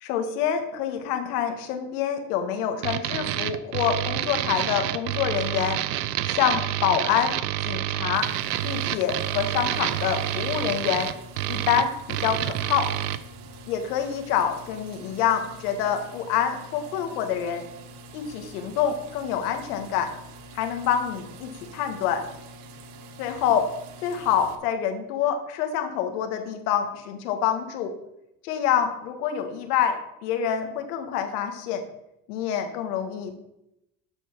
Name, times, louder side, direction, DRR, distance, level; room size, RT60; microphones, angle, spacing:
voice 1, 0.0-5.8 6.3-7.4 7.6-8.3 8.6-11.1 11.5-12.9 13.7-17.7 18.1-20.1 20.5-22.2 23.2-23.7 24.0-27.9 28.4-31.8 32.3-33.3, left 8 dB, 80° left, 6 dB, 1.7 m, -26 dB
sound 1, 2.8-13.2, right 13 dB, 90° right, 0.7 m, -28 dB
sound 2, 8.1-24.6, right 1 dB, 75° right, 1.6 m, -45 dB
12.0 x 4.5 x 5.9 m, 0.85 s
supercardioid pair, 95°, 45 cm